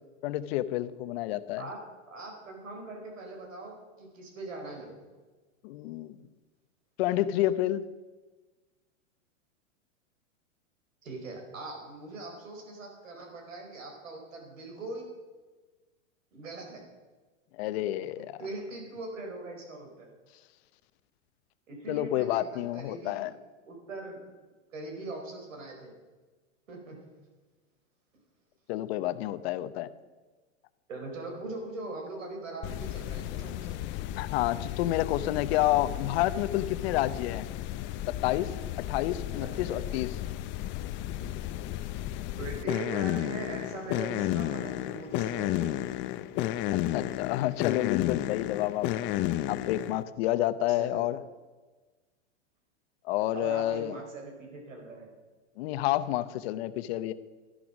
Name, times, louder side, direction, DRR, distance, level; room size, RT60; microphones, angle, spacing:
voice 1, 0.2-1.7 5.6-6.1 7.0-7.8 17.5-18.4 21.9-23.3 28.7-29.9 34.2-37.5 38.1-38.5 38.8-40.1 46.7-49.1 49.5-51.2 53.0-54.0 55.6-57.1, left 14 dB, 55° left, 14 dB, 0.9 m, -29 dB
voice 2, 2.1-4.9 11.0-15.1 16.3-16.8 17.7-17.8 18.4-20.1 21.7-23.3 23.7-24.2 24.7-25.9 26.7-27.0 30.9-33.8 39.4-39.8 42.4-45.8 50.7-51.1 53.3-55.1, right 2 dB, 85° right, 1 dB, 4.9 m, -41 dB
sound 1, 32.6-50.0, left 14 dB, 30° left, 0.6 m, -33 dB
13.0 x 11.0 x 5.2 m, 1.3 s
hypercardioid pair, 120°, 38 cm